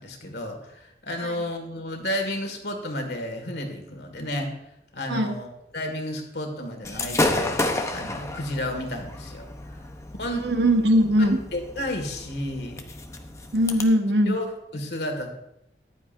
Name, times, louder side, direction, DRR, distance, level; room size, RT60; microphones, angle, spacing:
voice 1, 0.0-4.6 4.9-9.8 10.2-10.5 11.2-12.8 14.3-15.3, left 1 dB, 70° left, 4 dB, 2.0 m, -32 dB
Gunshot gunfire / Fireworks, 6.8-13.8, left 2 dB, 15° left, 0.8 m, -31 dB
voice 2, 10.4-11.4 13.5-14.4, equal, 85° right, 5 dB, 1.3 m, -20 dB
14.5 x 11.0 x 2.6 m, 0.83 s
head